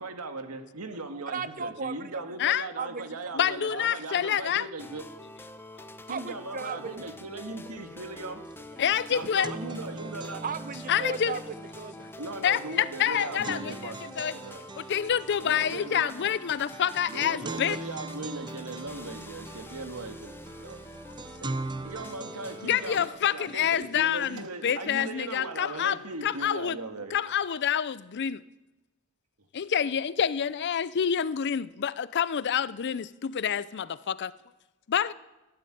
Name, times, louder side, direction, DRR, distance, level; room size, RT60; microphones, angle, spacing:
voice 1, 0.0-5.0 6.1-8.5 9.1-10.4 12.2-14.0 14.4-14.6 15.4-16.1 17.1-20.8 21.4-21.5 21.8-27.2, right 2 dB, 80° right, 1.9 m, -38 dB
voice 2, 1.3-2.4 2.8-3.3 6.1-7.0 10.4-12.0, right 5 dB, 40° right, 0.9 m, -36 dB
voice 3, 3.3-4.7 5.8-5.9 8.8-9.5 10.9-11.4 12.4-14.3 14.8-17.8 22.6-26.8 27.1-28.4 29.5-34.3 34.9-35.1, left 9 dB, 50° left, 0.5 m, -27 dB
sound 1, 4.8-23.1, left 1 dB, 10° left, 0.7 m, -46 dB
sound 2, 8.5-8.6 8.9-24.4, right 3 dB, 20° right, 0.5 m, -42 dB
12.5 x 12.5 x 9.2 m
head